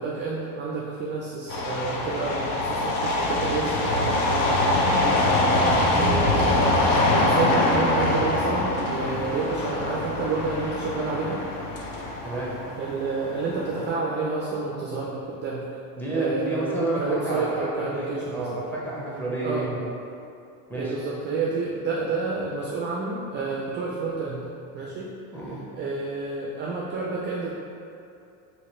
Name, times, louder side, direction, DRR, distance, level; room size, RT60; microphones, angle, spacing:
voice 1, 0.0-11.4 12.8-15.6 16.1-18.5 19.4-19.8 20.7-24.5 24.7-25.1 25.7-27.5, right 4 dB, 25° right, -4 dB, 0.3 m, -30 dB
sound 1, 1.5-13.9, left 1 dB, 75° left, 0.7 m, -24 dB
voice 2, 12.2-12.6 16.0-19.8 20.7-20.9 25.3-25.6, right 2 dB, 5° left, -6 dB, 0.7 m, -29 dB
3.0 x 2.9 x 3.0 m, 2.6 s
supercardioid pair, 100°, 43 cm